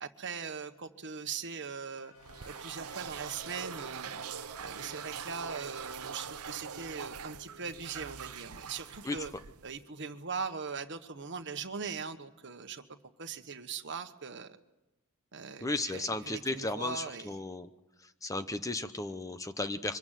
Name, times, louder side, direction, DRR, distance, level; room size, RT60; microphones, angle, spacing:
voice 1, 0.0-2.1 2.4-4.2 4.6-9.3 9.6-12.8 13.2-14.6 15.3-17.4, right 5 dB, 55° right, 9 dB, 1.3 m, -40 dB
sound 1, 2.0-9.7, left 3 dB, 65° left, 2.2 m, -58 dB
sound 2, 2.2-9.8, right 7 dB, 80° right, 0.7 m, -43 dB
voice 2, 15.6-17.7 18.2-20.0, left 2 dB, 15° left, 10 dB, 0.7 m, -34 dB
24.5 x 15.5 x 9.2 m, 0.97 s
head